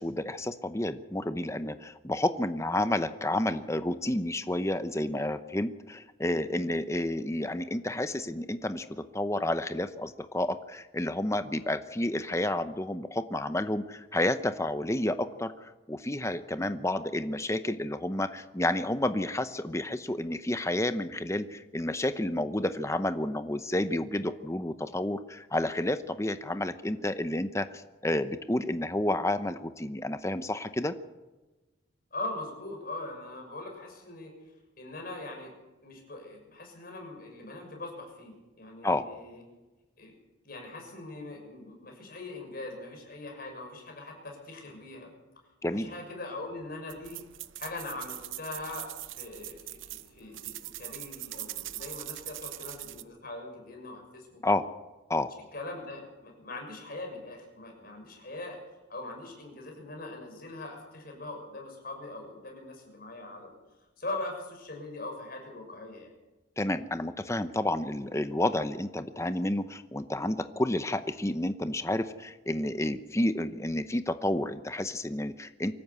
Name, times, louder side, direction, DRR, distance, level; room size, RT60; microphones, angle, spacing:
voice 1, 0.0-31.0 38.8-39.1 45.6-45.9 54.4-54.7 55.1-55.3 66.6-75.7, left 1 dB, 15° left, 10 dB, 0.8 m, -30 dB
voice 2, 32.1-34.3 34.8-35.5 35.8-39.4 40.0-40.2 40.4-45.1 45.7-47.2 47.5-54.4 55.5-58.6 58.9-63.6 64.0-66.1, left 2 dB, 50° left, 2 dB, 6.3 m, -41 dB
sound 1, 46.9-53.0, right 15 dB, 80° right, 0.8 m, -42 dB
24.0 x 14.0 x 8.3 m, 1.1 s
head